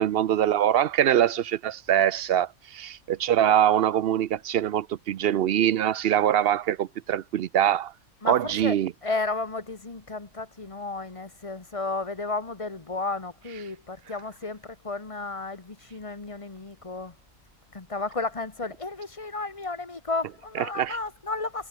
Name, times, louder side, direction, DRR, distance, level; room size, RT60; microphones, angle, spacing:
voice 1, 0.0-7.9 8.2-8.9 20.6-21.0, right 10 dB, 65° right, 0.6 m, -23 dB
voice 2, 8.2-8.8 9.0-17.2 17.7-21.7, left 3 dB, 25° left, 1.4 m, -33 dB
omnidirectional pair, 1.5 m